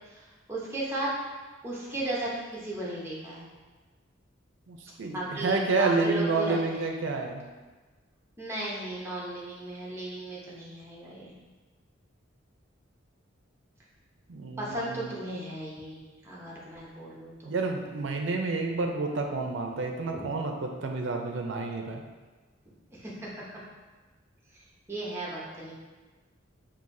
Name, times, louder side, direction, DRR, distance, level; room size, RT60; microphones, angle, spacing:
voice 1, 0.1-1.1 1.6-3.5 5.1-7.1 8.4-11.3 14.6-16.0 16.2-17.5 20.1-20.3 22.9-23.4 24.9-25.7, right 1 dB, 15° right, -6 dB, 0.8 m, -36 dB
voice 2, 4.7-7.4 14.3-15.1 17.5-22.0, right 3 dB, 65° right, 2 dB, 0.5 m, -29 dB
5.6 x 2.7 x 2.6 m, 1.3 s
head